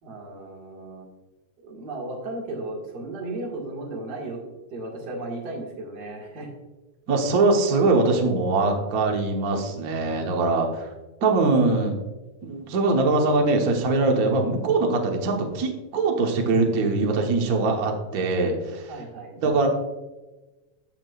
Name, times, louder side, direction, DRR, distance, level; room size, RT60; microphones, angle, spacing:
voice 1, 0.0-1.1 1.6-4.4 4.7-6.5 8.1-8.2 16.7-16.9 18.9-19.4, right 2 dB, 40° right, -2 dB, 2.0 m, -35 dB
voice 2, 7.1-10.9 11.2-12.0 12.4-18.8 19.4-19.7, right 3 dB, 65° right, 2 dB, 0.8 m, -22 dB
14.0 x 6.0 x 2.4 m, 1.1 s
omnidirectional pair, 3.4 m